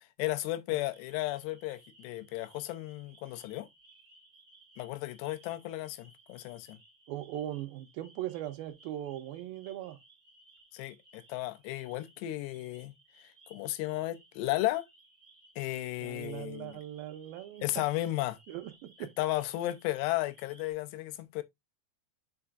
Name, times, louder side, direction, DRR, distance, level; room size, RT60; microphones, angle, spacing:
voice 1, 0.2-3.7 4.8-6.8 10.7-12.9 13.5-14.9 15.6-16.8 17.6-18.4 19.2-21.4, left 16 dB, 90° left, 2.9 m, -34 dB
sound 1, 0.9-20.7, right 2 dB, 25° right, 1.2 m, -61 dB
voice 2, 7.1-10.0 16.0-17.9 18.5-19.1, right 12 dB, 75° right, 2.5 m, -39 dB
6.9 x 5.5 x 2.5 m
omnidirectional pair, 4.7 m